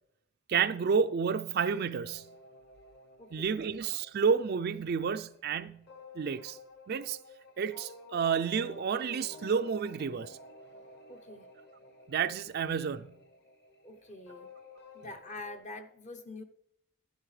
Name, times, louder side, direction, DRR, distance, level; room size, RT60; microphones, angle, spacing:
voice 1, 0.5-2.3 3.3-5.8 6.2-6.6 6.9-7.2 7.6-10.4 12.1-13.2, right 6 dB, 50° right, 0.4 m, -30 dB
sound 1, 2.1-15.6, left 3 dB, 50° left, 1.7 m, -53 dB
voice 2, 3.2-3.6 11.1-11.5 13.8-14.5 14.9-16.4, left 2 dB, 35° left, 0.7 m, -45 dB
11.5 x 11.0 x 3.2 m
head